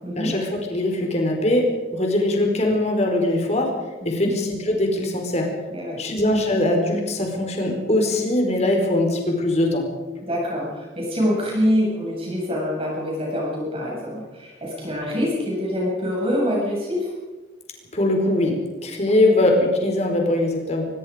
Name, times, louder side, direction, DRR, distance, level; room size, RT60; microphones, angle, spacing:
voice 1, 0.2-3.7 4.0-5.5 6.0-9.8 17.9-18.6 18.8-20.9, left 1 dB, 35° left, 2 dB, 4.7 m, -21 dB
voice 2, 4.0-4.3 5.7-6.0 10.2-17.1, equal, 30° right, -3 dB, 7.1 m, -25 dB
23.5 x 22.0 x 5.2 m, 1.2 s
head